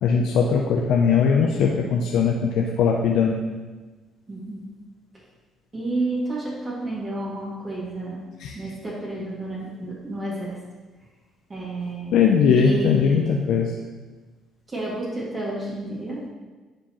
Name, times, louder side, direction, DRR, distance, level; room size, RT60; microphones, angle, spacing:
voice 1, 0.0-3.3 8.4-8.5 12.1-13.7, left 6 dB, 75° left, 1 dB, 0.6 m, -20 dB
voice 2, 4.3-4.6 5.7-8.2 8.5-10.6 11.5-12.2 12.5-13.4 14.7-16.3, right 2 dB, 30° right, -6 dB, 2.3 m, -30 dB
10.0 x 4.4 x 3.1 m, 1.3 s
supercardioid pair, 65°, 0 cm